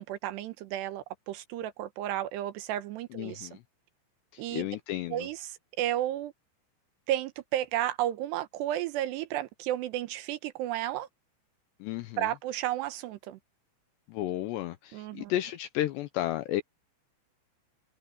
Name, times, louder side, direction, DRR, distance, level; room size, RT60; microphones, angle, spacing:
voice 1, 0.0-3.5 4.4-4.7 5.1-5.4 5.8-6.3 7.1-11.1 12.2-13.4 14.9-15.3, right 13 dB, 70° right, 3.0 m, -32 dB
voice 2, 3.1-3.6 4.3-5.3 11.8-12.4 14.1-16.6, left 13 dB, 80° left, 2.8 m, -33 dB
omnidirectional pair, 5.4 m